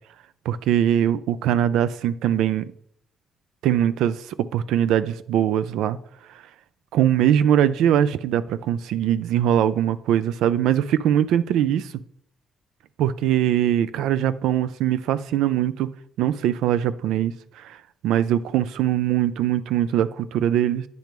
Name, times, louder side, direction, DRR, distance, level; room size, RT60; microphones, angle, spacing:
voice 1, 0.5-2.7 3.6-4.3 4.5-6.0 6.9-11.9 13.0-15.9 16.2-17.8 18.0-20.8, right 10 dB, 90° right, 14 dB, 0.3 m, -21 dB
9.1 x 3.1 x 5.1 m, 0.70 s
cardioid pair, 90°, 0 cm